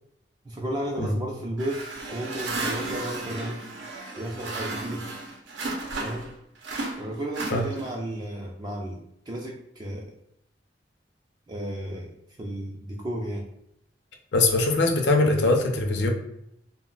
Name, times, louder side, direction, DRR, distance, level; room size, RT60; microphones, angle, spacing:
voice 1, 0.4-1.8 2.1-3.6 4.2-5.1 6.0-6.3 7.0-10.1 11.5-13.4, right 1 dB, 25° right, -1 dB, 0.3 m, -33 dB
sound 1, 1.6-6.3 6.6-8.1, right 2 dB, 80° right, 0.6 m, -34 dB
voice 2, 14.3-16.1, left 2 dB, 65° left, 3 dB, 0.5 m, -22 dB
2.2 x 2.1 x 3.6 m, 0.75 s
head